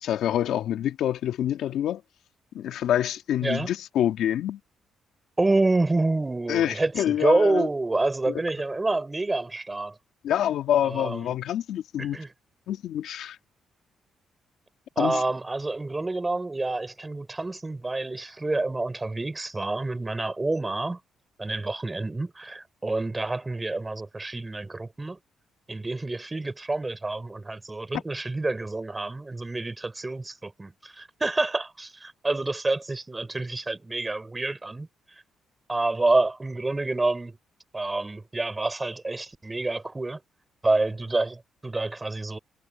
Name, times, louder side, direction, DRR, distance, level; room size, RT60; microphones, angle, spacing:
voice 1, 0.0-2.0 2.5-4.6 6.5-7.7 8.3-8.4 10.2-12.2 12.7-13.4 15.0-15.2, left 11 dB, 75° left, 2.3 m, -26 dB
voice 2, 3.4-3.7 5.4-10.0 10.8-11.3 12.0-12.3 15.0-21.0 21.4-25.2 25.7-34.9 35.7-37.4 37.7-40.2 40.6-42.4, right 2 dB, 20° right, 5.7 m, -28 dB
cardioid pair, 90°, 0 cm